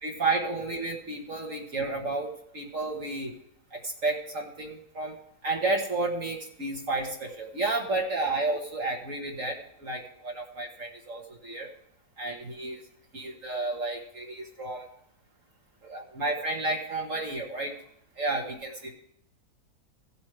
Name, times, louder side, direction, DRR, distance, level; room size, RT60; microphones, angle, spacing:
voice 1, 0.0-3.3 3.7-5.1 5.4-11.7 12.2-12.8 13.1-14.9 15.8-17.7 18.2-18.9, right 2 dB, 50° right, 0 dB, 1.7 m, -31 dB
16.0 x 7.9 x 3.3 m, 0.73 s
omnidirectional pair, 1.7 m